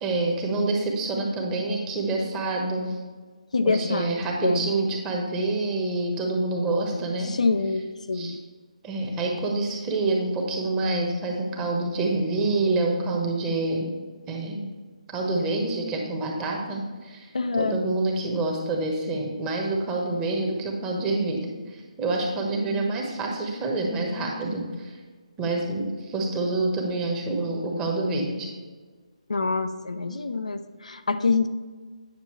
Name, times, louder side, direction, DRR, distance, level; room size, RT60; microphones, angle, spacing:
voice 1, 0.0-3.0 3.6-7.3 8.1-8.4 8.8-13.9 14.3-14.6 15.1-25.0 25.4-28.5, right 2 dB, 15° right, 0 dB, 1.2 m, -27 dB
voice 2, 3.5-4.1 4.4-4.7 7.2-8.4 17.3-17.8 21.3-21.4 29.3-31.5, left 4 dB, 80° left, 8 dB, 0.7 m, -26 dB
9.3 x 6.3 x 3.2 m, 1.4 s
figure-of-eight pair, 155°, 4 cm